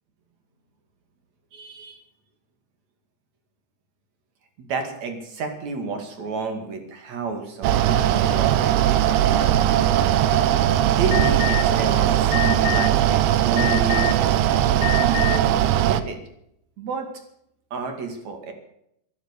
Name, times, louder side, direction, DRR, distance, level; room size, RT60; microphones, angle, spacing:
voice 1, 1.5-2.0 4.6-9.0 9.2-9.5 10.8-16.2 16.8-17.1 17.7-18.5, right 4 dB, 45° right, 6 dB, 2.8 m, -31 dB
Mechanical fan, 7.6-16.0, right 11 dB, 80° right, 2.3 m, -19 dB
Alarm, 11.1-11.6 12.3-12.9 13.6-14.2 14.8-15.4, left 18 dB, 85° left, 4.6 m, -27 dB
15.0 x 13.5 x 6.7 m, 0.75 s
omnidirectional pair, 5.7 m